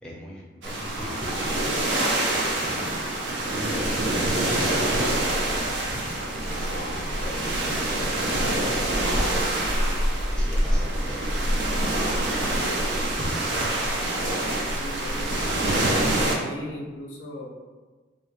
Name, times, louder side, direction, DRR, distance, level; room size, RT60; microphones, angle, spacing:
voice 1, 0.0-3.2 3.6-6.0 6.3-8.6 10.3-11.3 12.2-13.7, equal, 5° left, -5 dB, 0.4 m, -40 dB
sound 1, 0.6-16.4, right 1 dB, 80° right, 0.5 m, -25 dB
voice 2, 14.7-15.9 16.2-17.5, left 1 dB, 85° left, -1 dB, 0.5 m, -38 dB
2.5 x 2.1 x 2.7 m, 1.3 s
head